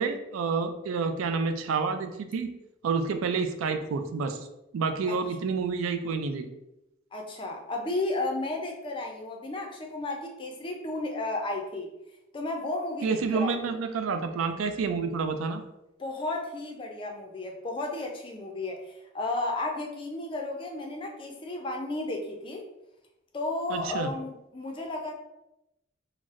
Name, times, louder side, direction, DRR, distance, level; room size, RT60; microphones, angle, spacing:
voice 1, 0.0-2.5 2.8-4.4 4.7-6.5 13.0-15.6 23.7-24.1, right 5 dB, 80° right, 8 dB, 0.3 m, -29 dB
voice 2, 7.1-11.9 12.3-13.6 16.0-22.6 23.3-25.2, left 2 dB, 25° left, 1 dB, 0.4 m, -33 dB
4.0 x 2.0 x 2.4 m, 0.89 s
head